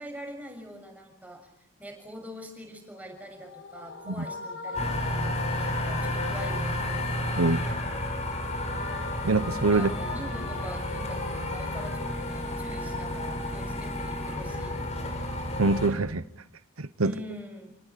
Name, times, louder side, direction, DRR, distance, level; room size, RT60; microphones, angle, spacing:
voice 1, 0.0-1.5 1.8-7.5 9.7-14.9 17.0-17.7, equal, 5° right, 6.7 m, -43 dB
sound 1, 3.0-7.9 8.3-13.1, left 3 dB, 65° left, 4.7 m, -41 dB
sound 2, 4.7-15.9, left 1 dB, 30° left, 6.0 m, -31 dB
voice 2, 9.2-9.9 15.6-16.2 16.8-17.1, right 3 dB, 90° right, 1.0 m, -24 dB
28.5 x 19.0 x 8.5 m
head